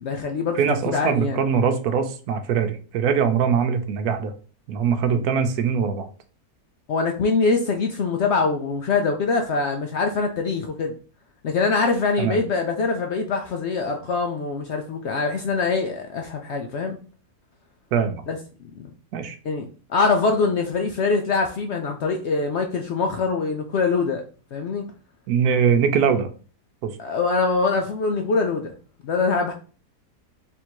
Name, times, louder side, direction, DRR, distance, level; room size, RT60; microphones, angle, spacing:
voice 1, 0.0-0.6 0.9-1.4 5.1-5.2 6.9-10.9 11.4-17.0 18.3-18.4 18.8-18.9 19.4-24.2 24.5-24.8 27.0-28.7 29.0-29.5, left 4 dB, 75° left, 3 dB, 0.6 m, -23 dB
voice 2, 0.6-4.3 4.7-6.1 12.2-12.4 17.9-18.2 19.1-19.4 25.3-26.3 26.8-27.0, right 6 dB, 70° right, 8 dB, 1.1 m, -22 dB
3.6 x 2.6 x 4.5 m, 0.39 s
omnidirectional pair, 1.7 m